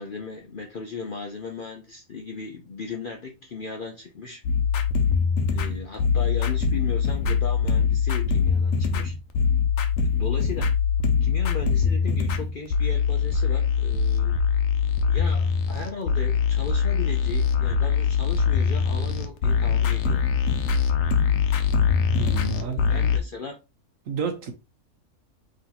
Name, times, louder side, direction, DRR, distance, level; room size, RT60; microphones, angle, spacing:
voice 1, 0.0-4.4 5.5-9.1 10.1-10.7 11.2-14.4 15.0-20.3 22.5-23.6, left 4 dB, 55° left, 0.6 m, -36 dB
sound 1, 4.4-23.2, left 6 dB, 70° left, 1.0 m, -23 dB
voice 2, 21.8-22.8 24.1-24.5, right 5 dB, 70° right, 1.2 m, -31 dB
3.9 x 3.1 x 2.9 m
omnidirectional pair, 1.5 m